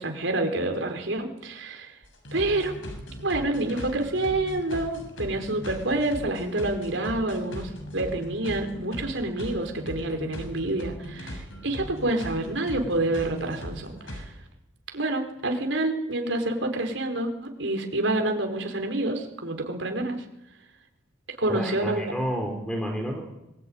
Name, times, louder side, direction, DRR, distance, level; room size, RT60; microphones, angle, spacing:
voice 1, 0.0-1.9 2.3-2.7 3.2-14.3 14.9-17.3 17.6-20.2 21.4-22.0, right 2 dB, 70° right, 4 dB, 4.8 m, -28 dB
sound 1, 2.0-14.3, equal, 80° left, 6.3 m, -39 dB
voice 2, 21.5-23.2, equal, 5° left, 3 dB, 3.5 m, -30 dB
25.0 x 21.0 x 9.7 m, 0.94 s
head